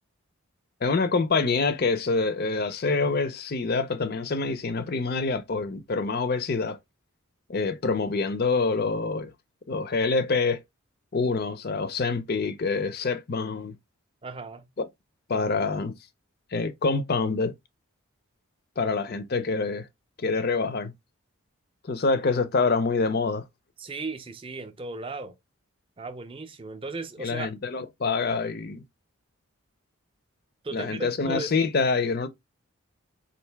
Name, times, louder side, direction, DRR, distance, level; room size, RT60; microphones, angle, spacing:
voice 1, 0.8-6.8 7.5-9.3 9.7-10.6 11.1-13.8 14.8-14.9 15.3-16.0 16.5-17.5 18.8-19.9 20.2-20.9 21.8-23.4 27.2-28.8 30.7-32.3, left 4 dB, 45° left, 0.5 m, -26 dB
voice 2, 14.2-14.7 23.8-25.3 26.0-27.5 30.6-31.5, right 3 dB, 25° right, 0.5 m, -36 dB
4.4 x 2.6 x 3.3 m
head